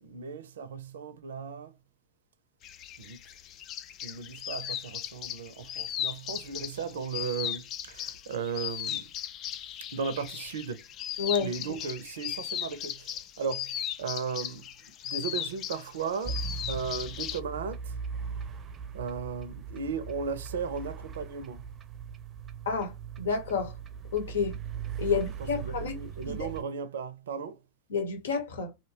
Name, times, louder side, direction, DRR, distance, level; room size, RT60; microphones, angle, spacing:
voice 1, 0.0-1.7 3.0-3.2 4.0-9.0 9.9-10.8 11.4-14.7 15.0-16.4 16.7-17.9 18.9-21.7 25.1-27.6, right 5 dB, 75° right, 0.5 m, -36 dB
sound 1, 2.6-17.4, left 10 dB, 40° left, 0.3 m, -37 dB
voice 2, 11.2-11.5 22.7-22.9 23.2-23.7 24.1-24.5 25.0-26.0 26.2-26.5 27.9-28.7, left 5 dB, 75° left, 0.9 m, -29 dB
sound 2, 16.2-26.6, right 7 dB, 30° right, 0.5 m, -39 dB
2.7 x 2.2 x 2.7 m
hypercardioid pair, 95°, 0 cm